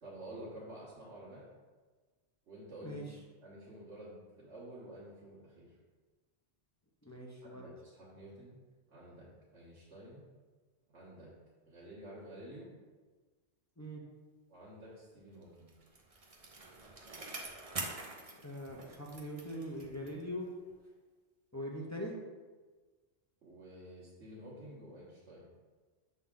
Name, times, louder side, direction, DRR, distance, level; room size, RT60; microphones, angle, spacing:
voice 1, 0.0-1.4 2.5-3.0 3.4-5.7 7.4-8.6 8.9-9.3 9.5-10.2 10.9-11.3 11.6-12.7 14.5-15.7 23.4-25.5, right 1 dB, 90° right, -9 dB, 1.7 m, -50 dB
voice 2, 2.8-3.2 7.0-7.7 13.8-14.0 18.4-20.5 21.5-22.1, equal, 20° left, -2 dB, 0.6 m, -42 dB
Bicycle, 15.4-20.3 20.7-20.8, right 3 dB, 35° right, 0.7 m, -46 dB
7.0 x 3.8 x 3.7 m, 1.4 s
omnidirectional pair, 1.2 m